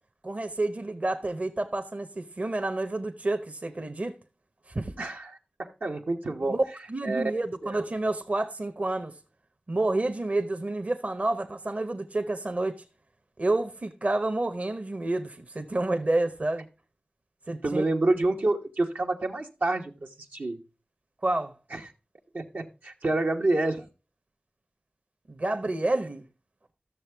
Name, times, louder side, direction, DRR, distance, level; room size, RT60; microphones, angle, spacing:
voice 1, 0.2-4.1 4.7-5.0 6.5-6.6 6.9-9.1 9.7-12.7 13.4-16.7 17.5-17.8 21.2-21.5 25.3-26.2, right 2 dB, 50° right, 0.9 m, -29 dB
voice 2, 5.0-6.6 7.0-7.2 7.6-7.8 17.6-20.6 21.7-21.8 22.3-23.9, right 2 dB, 80° right, 1.1 m, -28 dB
12.5 x 6.8 x 3.4 m
wide cardioid pair, 50°, 3 cm